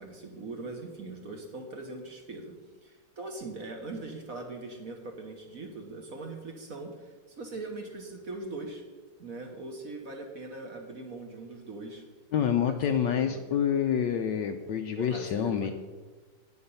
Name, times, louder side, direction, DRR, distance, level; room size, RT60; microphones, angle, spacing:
voice 1, 0.0-8.8 9.2-12.0 12.7-13.6 14.9-15.7, right 2 dB, 45° right, 3 dB, 1.3 m, -41 dB
voice 2, 12.3-15.7, left 8 dB, 75° left, 7 dB, 1.1 m, -27 dB
9.8 x 8.7 x 5.5 m, 1.3 s
omnidirectional pair, 2.4 m